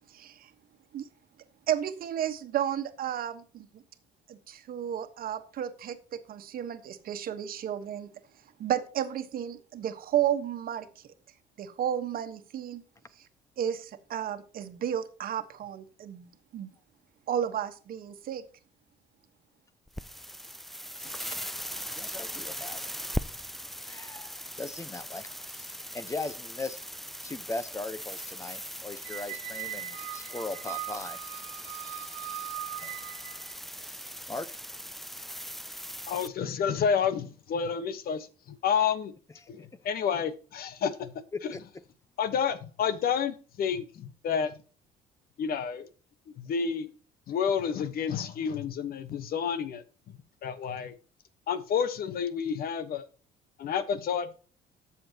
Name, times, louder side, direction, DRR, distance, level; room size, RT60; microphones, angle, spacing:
voice 1, 0.1-0.5 0.9-1.1 1.7-3.8 4.3-8.1 8.6-11.0 11.6-12.8 13.2-13.3 13.6-16.7 17.3-18.4 20.9-21.4, right 10 dB, 60° right, 1.3 m, -33 dB
sound 1, 19.9-36.3, equal, ahead, 0.4 m, -40 dB
voice 2, 22.0-22.8 23.8-25.3 25.5-26.8 27.2-31.2 32.8-32.9 33.8-34.0 34.3-34.5 41.5-41.6, left 3 dB, 15° left, 0.8 m, -39 dB
Squeak, 29.0-33.5, right 16 dB, 75° right, 1.3 m, -40 dB
voice 3, 36.1-39.1 39.5-41.1 41.4-41.5 42.2-44.5 45.4-45.9 46.4-46.9 47.3-50.9 51.5-53.1 53.6-54.3, left 7 dB, 60° left, 1.2 m, -30 dB
13.0 x 7.1 x 2.9 m
cardioid pair, 105°, 17 cm